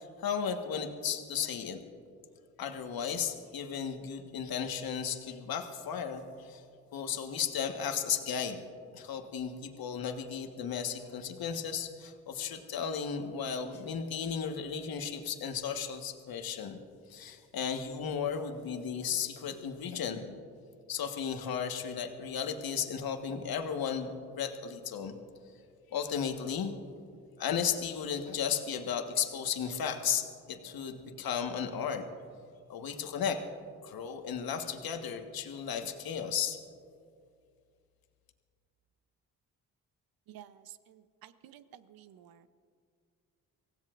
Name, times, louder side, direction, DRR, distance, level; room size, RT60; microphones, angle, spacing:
voice 1, 0.0-1.8 2.6-6.6 6.9-8.6 8.9-16.8 17.1-20.2 20.9-25.1 25.9-26.7 27.4-32.0 32.7-33.4 33.8-36.6, left 7 dB, 60° left, 6 dB, 1.5 m, -34 dB
voice 2, 40.3-42.5, right 11 dB, 60° right, 14 dB, 0.8 m, -53 dB
24.0 x 16.5 x 2.6 m, 2.3 s
hypercardioid pair, 50°, 40 cm